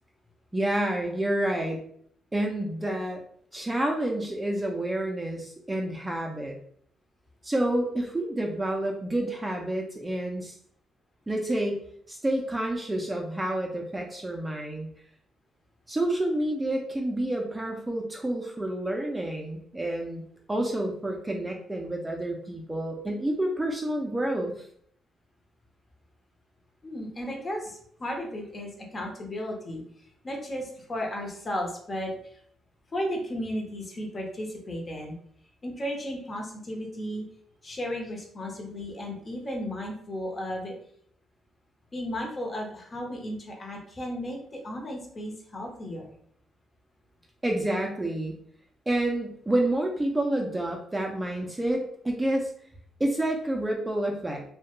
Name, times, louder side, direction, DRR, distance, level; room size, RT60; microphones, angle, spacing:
voice 1, 0.5-1.8 2.3-3.2 3.5-6.6 7.4-10.6 11.3-14.9 15.9-20.2 20.5-24.5 47.4-48.4 48.9-52.5 53.0-54.4, right 1 dB, 15° right, 0 dB, 0.4 m, -29 dB
voice 2, 26.8-29.8 30.2-32.1 32.9-35.1 35.6-37.2 37.6-40.7 41.9-46.1, equal, 35° left, 0 dB, 0.8 m, -34 dB
2.3 x 2.1 x 2.9 m, 0.63 s
cardioid pair, 90°, 0 cm